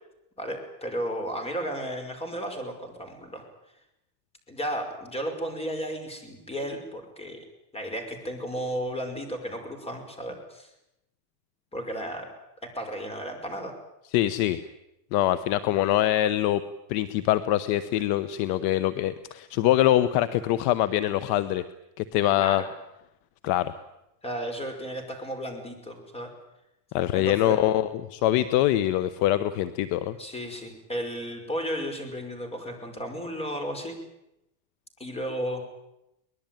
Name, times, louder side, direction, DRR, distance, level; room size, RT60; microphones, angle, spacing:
voice 1, 0.4-3.5 4.5-7.4 7.7-10.7 11.7-12.3 12.6-13.7 22.4-22.7 24.2-26.3 27.1-27.6 30.2-34.0 35.0-35.7, equal, 10° left, 5 dB, 5.3 m, -34 dB
voice 2, 14.1-14.6 15.1-16.6 16.9-21.6 22.0-22.6 23.4-23.7 26.9-30.2, left 13 dB, 50° left, 15 dB, 1.2 m, -24 dB
23.0 x 20.0 x 9.2 m, 0.86 s
supercardioid pair, 135°, 50 cm